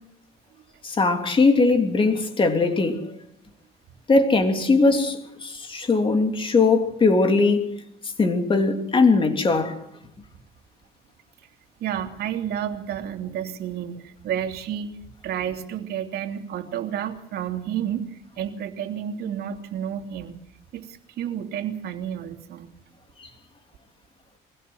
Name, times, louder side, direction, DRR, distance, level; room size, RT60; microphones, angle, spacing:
voice 1, 0.8-3.1 4.1-9.8 23.2-23.3, left 3 dB, 30° left, 3.2 m, -20 dB
voice 2, 11.8-14.9 15.2-20.3 20.7-22.7, right 9 dB, 65° right, 2.8 m, -31 dB
23.5 x 16.5 x 7.8 m
cardioid pair, 110°, 17 cm